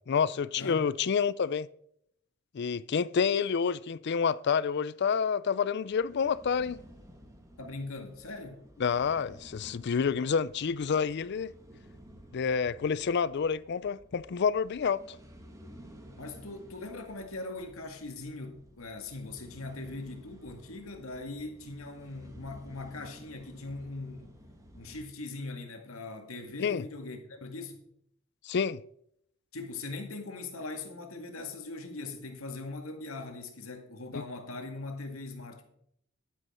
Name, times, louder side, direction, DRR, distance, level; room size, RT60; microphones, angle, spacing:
voice 1, 0.1-1.7 2.5-6.8 8.8-11.5 12.3-15.2 26.6-26.8 28.5-28.8 34.1-34.2, left 6 dB, 55° left, 0.4 m, -28 dB
voice 2, 0.6-0.9 7.6-8.6 16.2-24.3 24.7-27.8 29.5-35.6, left 2 dB, 80° left, 2.0 m, -41 dB
sound 1, 5.9-25.0, equal, 15° right, 1.6 m, -54 dB
11.0 x 9.2 x 4.3 m
head